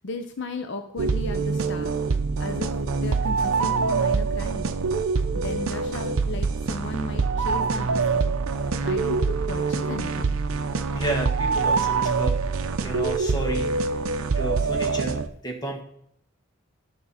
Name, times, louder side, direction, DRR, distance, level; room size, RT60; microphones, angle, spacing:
voice 1, 0.0-1.9 2.4-2.7 3.0-4.7 5.3-8.4 8.8-10.4, left 2 dB, 55° left, 7 dB, 0.6 m, -35 dB
sound 1, 1.0-15.3, right 4 dB, 80° right, 0.6 m, -25 dB
voice 2, 10.9-12.4 12.8-13.9 14.4-15.8, right 2 dB, 20° left, 1 dB, 1.5 m, -31 dB
11.0 x 6.3 x 4.1 m, 0.72 s
head